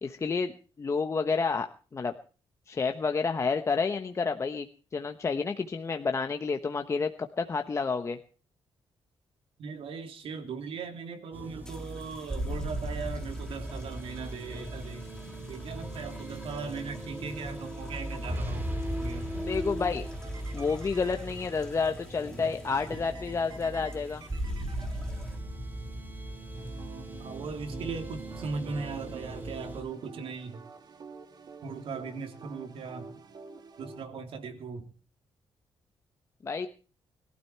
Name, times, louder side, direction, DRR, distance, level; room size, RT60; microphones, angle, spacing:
voice 1, 0.0-1.7 1.9-2.1 2.7-4.7 4.9-8.2 19.3-20.0 20.5-24.2 36.4-36.7, left 4 dB, 30° left, 6 dB, 1.1 m, -30 dB
voice 2, 9.6-15.1 15.5-18.6 19.0-19.3 27.2-30.6 31.6-33.2 33.8-34.9, right 5 dB, 75° right, 6 dB, 3.2 m, -38 dB
sound 1, 11.3-29.8, right 1 dB, 20° right, 4.4 m, -37 dB
sound 2, 11.6-25.7 26.5-26.9, left 1 dB, 5° left, 2.6 m, -54 dB
sound 3, 20.0-21.9 22.8-25.6 26.5-34.1, right 5 dB, 45° right, 2.3 m, -49 dB
22.0 x 12.5 x 4.5 m, 0.40 s
cardioid pair, 135°, 10 cm